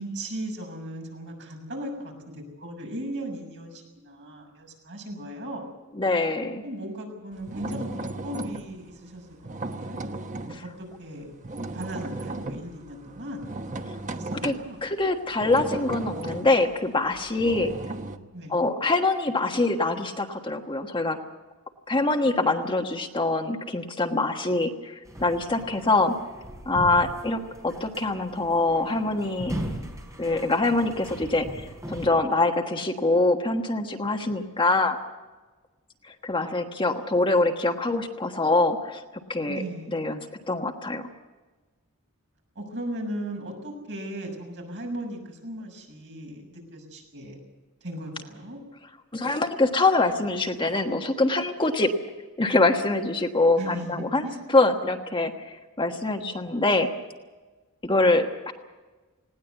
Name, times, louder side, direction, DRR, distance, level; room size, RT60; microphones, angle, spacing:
voice 1, 0.0-5.6 6.6-10.0 10.6-11.3 11.7-13.5 14.1-14.3 14.6-14.9 18.3-18.6 39.5-40.0 42.5-47.4 47.8-48.6 53.6-54.4, right 1 dB, 55° right, 1 dB, 6.8 m, -37 dB
voice 2, 6.0-6.6 10.5-10.6 14.4-14.5 14.8-17.7 18.5-21.2 21.9-26.1 26.7-29.5 30.2-35.0 36.2-39.0 39.3-39.6 39.9-41.1 49.1-51.9 52.4-54.2 54.5-56.9 57.8-58.5, left 2 dB, 25° left, 4 dB, 1.3 m, -24 dB
sound 1, 7.4-10.7 11.0-18.2, right 2 dB, 35° right, 1.1 m, -35 dB
sound 2, 25.0-32.1, equal, 15° right, 4.3 m, -39 dB
20.0 x 18.0 x 8.2 m, 1.2 s
head